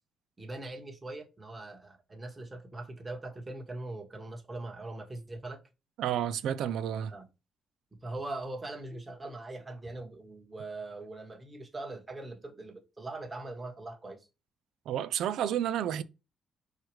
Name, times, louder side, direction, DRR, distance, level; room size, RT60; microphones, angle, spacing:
voice 1, 0.4-5.6 7.1-7.3 7.9-14.3, right 2 dB, 20° right, 1.3 m, -41 dB
voice 2, 6.0-7.1 14.9-16.0, right 10 dB, 80° right, 0.4 m, -30 dB
4.7 x 2.4 x 4.6 m
cardioid pair, 90°, 0 cm